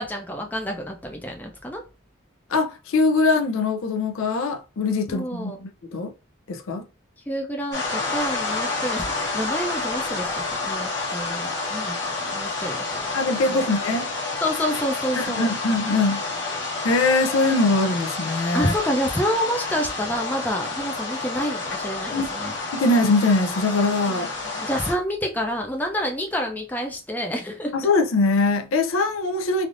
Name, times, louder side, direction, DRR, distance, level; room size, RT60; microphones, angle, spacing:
voice 1, 0.0-1.8 5.1-5.6 7.3-13.1 13.5-13.6 14.4-15.5 18.5-22.5 24.1-27.7, equal, 10° left, 0.4 m, -28 dB
voice 2, 2.5-6.1 6.5-6.8 13.1-14.1 15.2-16.2 16.8-18.7 22.1-22.3 22.7-24.3 27.7-29.7, left 3 dB, 85° left, 0.5 m, -22 dB
sound 1, 7.7-24.9, left 3 dB, 60° left, 1.1 m, -29 dB
3.3 x 2.5 x 2.5 m
head